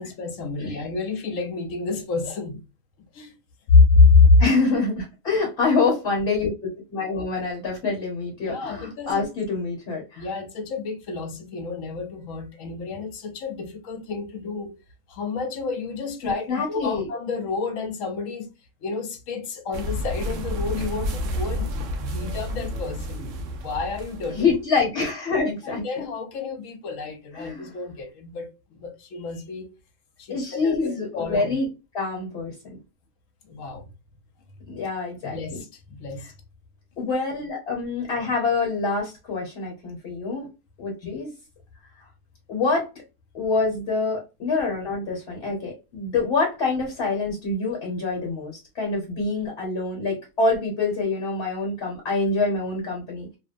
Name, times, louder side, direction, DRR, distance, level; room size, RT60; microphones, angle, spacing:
voice 1, 0.0-2.6 3.1-3.4 3.7-4.4 8.4-9.3 10.2-14.7 15.1-18.5 18.8-23.3 23.6-24.5 25.6-28.5 28.8-29.7 30.2-31.6 33.4-33.9 35.2-36.3 41.0-41.2, left 4 dB, 75° left, 1.0 m, -26 dB
voice 2, 4.4-10.2 16.2-17.1 24.3-25.8 27.4-27.7 30.3-31.7 31.9-32.8 34.7-35.6 37.0-40.5 40.8-41.3 42.5-42.9 43.3-53.4, left 3 dB, 55° left, 1.1 m, -26 dB
sound 1, 19.7-24.6, left 1 dB, 70° right, 0.9 m, -30 dB
2.8 x 2.1 x 2.4 m
omnidirectional pair, 1.4 m